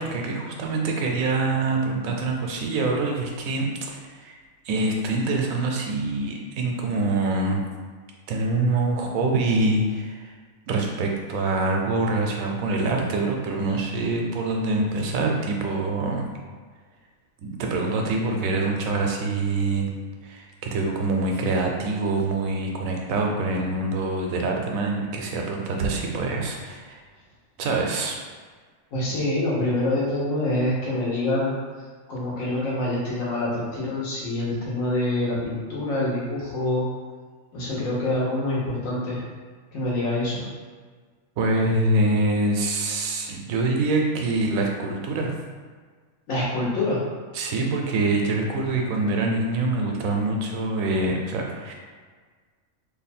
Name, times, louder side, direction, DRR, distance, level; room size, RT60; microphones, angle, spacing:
voice 1, 0.0-4.4 4.7-7.6 8.3-10.3 10.7-16.3 17.4-19.9 20.2-27.0 27.6-28.2 41.4-45.3 47.3-51.7, right 2 dB, 90° right, 1 dB, 1.0 m, -25 dB
voice 2, 28.9-31.5 32.1-36.9 37.5-39.2 39.7-40.5 46.3-47.0, left 1 dB, 75° left, -6 dB, 1.4 m, -26 dB
3.1 x 2.2 x 4.2 m, 1.5 s
omnidirectional pair, 1.4 m